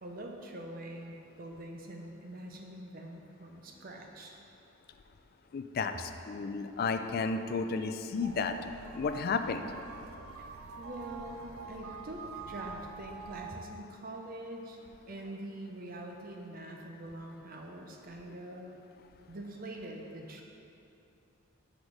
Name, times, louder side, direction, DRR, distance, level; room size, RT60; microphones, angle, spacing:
voice 1, 0.0-4.4 10.4-14.8 15.1-18.7 19.3-20.4, right 1 dB, 45° right, 1 dB, 0.7 m, -44 dB
voice 2, 5.5-8.5 9.0-9.6, left 4 dB, 45° left, 8 dB, 0.3 m, -32 dB
sound 1, 8.2-13.6, right 4 dB, 80° right, 0.5 m, -46 dB
6.2 x 5.1 x 4.8 m, 2.7 s
head